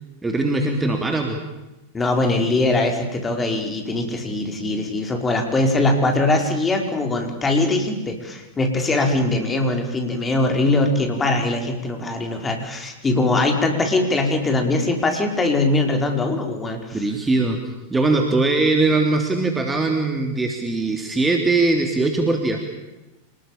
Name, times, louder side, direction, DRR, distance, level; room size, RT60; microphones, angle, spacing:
voice 1, 0.2-1.4 16.9-17.6 17.9-22.6, right 3 dB, 10° right, 3 dB, 3.2 m, -21 dB
voice 2, 1.9-17.1, left 2 dB, 15° left, 3 dB, 5.1 m, -21 dB
28.0 x 20.0 x 8.8 m, 0.99 s
figure-of-eight pair, 90°, 0 cm